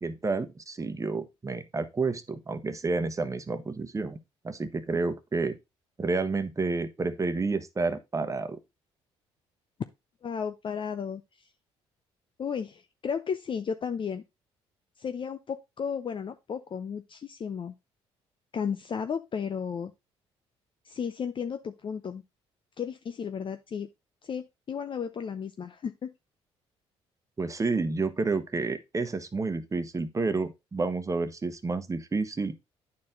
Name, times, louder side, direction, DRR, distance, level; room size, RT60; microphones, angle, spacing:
voice 1, 0.0-4.2 4.4-5.6 6.0-8.6 27.4-32.5, right 3 dB, 25° right, 1.1 m, -30 dB
voice 2, 10.2-11.2 12.4-14.2 15.0-17.7 18.5-19.9 20.8-22.2 22.8-23.9 24.2-26.1, left 7 dB, 40° left, 0.6 m, -34 dB
9.6 x 4.4 x 3.8 m
supercardioid pair, 70°, 12 cm